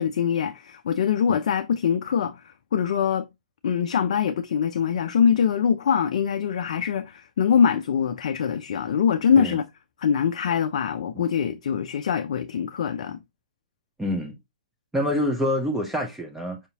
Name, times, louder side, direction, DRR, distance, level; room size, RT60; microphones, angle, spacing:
voice 1, 0.0-2.4 2.7-3.3 3.6-9.6 10.0-13.2, left 7 dB, 60° left, 0.4 m, -23 dB
voice 2, 14.0-14.4 14.9-16.6, left 1 dB, 5° right, 0.6 m, -26 dB
5.0 x 2.7 x 2.7 m
figure-of-eight pair, 120°, 4 cm